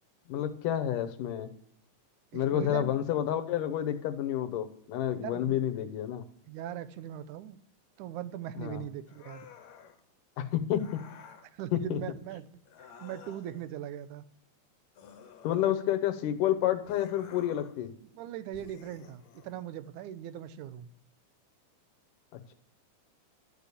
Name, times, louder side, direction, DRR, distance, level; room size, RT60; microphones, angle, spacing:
voice 1, 0.3-1.5 2.3-6.2 8.6-8.8 10.4-11.0 11.7-12.0 15.4-17.9, left 11 dB, 85° left, 9 dB, 2.7 m, -29 dB
voice 2, 2.3-2.9 5.1-5.6 6.5-7.6 8.0-9.5 11.5-12.5 12.8-14.2 18.0-20.9, right 11 dB, 75° right, 13 dB, 2.2 m, -40 dB
sound 1, 9.1-10.0 10.7-11.5 12.7-13.7 15.0-16.1 16.9-17.8 18.5-19.5, left 7 dB, 65° left, 2.3 m, -52 dB
13.0 x 6.8 x 8.3 m, 0.70 s
omnidirectional pair, 3.6 m